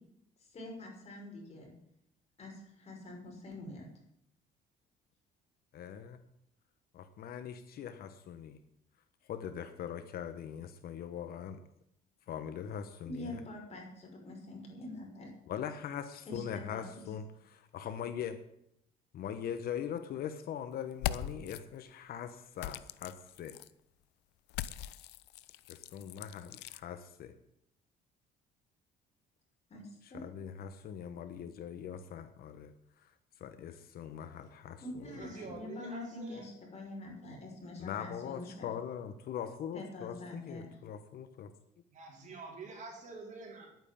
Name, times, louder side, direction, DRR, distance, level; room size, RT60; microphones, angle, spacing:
voice 1, 0.5-1.7 2.4-3.9 13.0-15.3 16.3-17.0 29.7-29.8 30.1-30.2 34.8-38.7 39.7-40.7, left 1 dB, 40° left, 0 dB, 6.0 m, -45 dB
voice 2, 5.7-6.2 6.9-8.6 9.3-11.6 12.3-13.4 15.5-18.4 19.1-23.6 25.7-27.3 30.0-33.1 33.4-35.3 37.8-41.5, left 8 dB, 65° left, 10 dB, 1.2 m, -41 dB
sound 1, 20.9-21.6 22.6-23.7 24.5-26.8, left 13 dB, 90° left, 0.6 m, -40 dB
voice 3, 35.0-36.5 41.9-43.8, right 3 dB, 45° right, 0 dB, 4.8 m, -47 dB
11.0 x 9.4 x 8.7 m, 0.77 s
cardioid pair, 110°, 17 cm